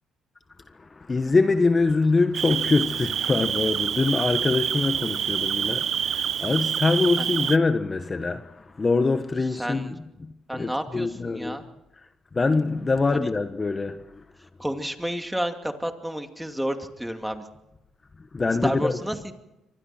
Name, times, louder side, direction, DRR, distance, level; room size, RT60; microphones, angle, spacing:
voice 1, 1.1-8.4 8.8-9.9 10.5-11.6 12.3-14.0 18.3-19.0, left 3 dB, 30° left, 1.4 m, -24 dB
Cricket, 2.3-7.6, right 8 dB, 65° right, 0.8 m, -27 dB
voice 2, 9.5-9.9 10.5-11.6 13.1-13.3 14.6-17.4 18.6-19.3, equal, 5° right, 2.6 m, -30 dB
28.0 x 24.5 x 4.5 m
cardioid pair, 75°, 0 cm